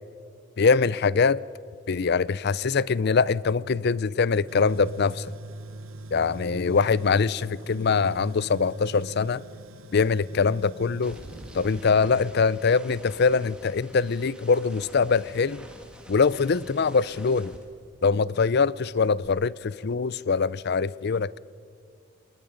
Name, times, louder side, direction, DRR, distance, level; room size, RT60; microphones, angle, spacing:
voice 1, 0.6-1.4 1.9-5.3 6.1-9.4 9.9-11.2 11.5-15.6 16.1-17.5 18.0-21.4, left 5 dB, 50° left, 0.5 m, -23 dB
sound 1, 2.0-2.2 2.4-6.8 7.1-18.4 18.6-19.3, equal, 5° right, 2.3 m, -50 dB
Tools, 4.5-11.8, right 2 dB, 80° right, 1.1 m, -42 dB
29.5 x 20.5 x 5.2 m
head